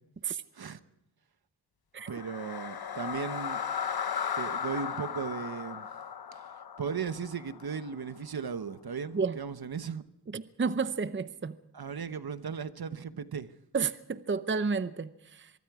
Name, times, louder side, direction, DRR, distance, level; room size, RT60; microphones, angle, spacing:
sound 1, 2.0-8.2, left 7 dB, 60° left, 1.0 m, -36 dB
voice 1, 2.1-3.6 4.3-5.9 6.8-10.0 11.7-13.5, right 6 dB, 60° right, 1.0 m, -36 dB
voice 2, 10.3-11.6 13.7-15.5, right 5 dB, 30° right, 0.7 m, -31 dB
24.0 x 23.0 x 4.8 m
wide cardioid pair, 85°, 42 cm